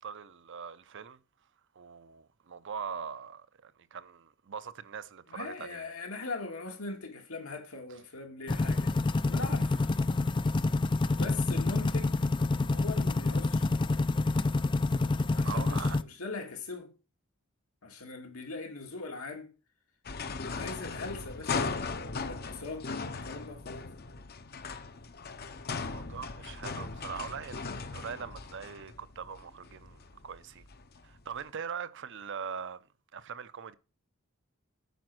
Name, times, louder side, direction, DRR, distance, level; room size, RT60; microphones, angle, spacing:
voice 1, 0.0-1.2 1.8-5.9 15.4-16.0 20.6-20.7 25.7-30.6 31.0-32.8 33.1-33.7, right 6 dB, 60° right, 0.7 m, -42 dB
voice 2, 5.3-9.8 11.2-12.3 12.6-13.7 15.3-16.9 17.8-19.5 20.4-23.9, left 3 dB, 85° left, 2.3 m, -41 dB
sound 1, 8.5-16.0, left 3 dB, 20° left, 0.4 m, -28 dB
sound 2, 20.1-31.4, left 4 dB, 50° left, 0.8 m, -38 dB
9.2 x 5.2 x 6.1 m
head